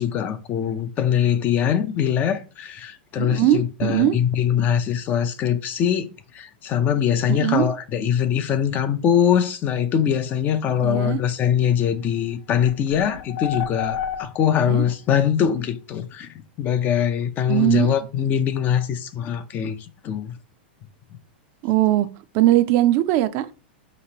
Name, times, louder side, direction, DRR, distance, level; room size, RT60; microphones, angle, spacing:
voice 1, 0.0-19.8 20.0-20.3, left 9 dB, 30° left, 0.5 m, -22 dB
voice 2, 3.2-4.2 7.3-7.7 10.8-11.2 14.6-14.8 17.5-17.9 21.6-22.1 22.3-23.5, right 14 dB, 45° right, 0.4 m, -20 dB
sound 1, 12.0-12.1 12.5-14.8, left 8 dB, 65° left, 0.9 m, -30 dB
5.0 x 3.0 x 2.8 m
hypercardioid pair, 130°, 6 cm